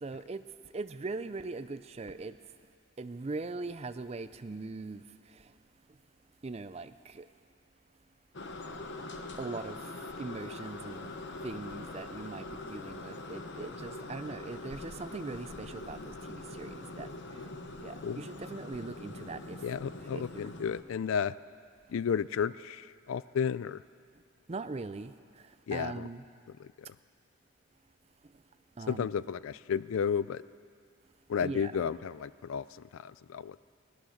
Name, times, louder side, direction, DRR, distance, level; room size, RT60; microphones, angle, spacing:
voice 1, 0.0-0.4 0.7-2.3 3.0-5.0 6.4-7.2 9.4-9.8 10.2-11.2 11.4-12.4 12.7-16.0 16.3-17.1 17.8-19.6 20.1-20.5 24.5-25.1 25.7-26.2 28.8-29.1 31.4-31.7, right 3 dB, 30° right, 12 dB, 0.4 m, -40 dB
sound 1, 8.3-20.8, left 2 dB, 55° left, 0.9 m, -43 dB
voice 2, 19.6-21.4 21.9-23.8 25.7-26.1 26.6-26.9 28.9-30.4 31.3-33.6, left 7 dB, 70° left, 17 dB, 0.3 m, -33 dB
17.5 x 12.0 x 6.4 m, 2.3 s
head